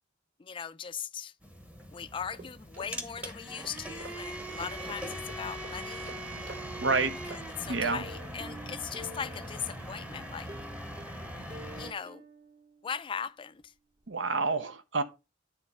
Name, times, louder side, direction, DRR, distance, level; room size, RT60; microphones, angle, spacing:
voice 1, 0.4-1.3 1.9-6.1 7.6-10.5 11.8-12.2 12.8-13.7, left 7 dB, 30° left, 0.4 m, -39 dB
sound 1, 1.4-11.9, right 1 dB, 10° right, 0.9 m, -41 dB
sound 2, 2.1-7.9, right 1 dB, 50° right, 3.5 m, -51 dB
voice 2, 6.8-7.1 7.7-8.0 14.1-15.0, right 4 dB, 75° right, 0.9 m, -28 dB
Plucked string instrument, 7.9-9.9 10.5-13.3 13.6-13.7 14.0-14.1, left 1 dB, 25° right, 0.8 m, -49 dB
9.6 x 3.2 x 5.4 m
head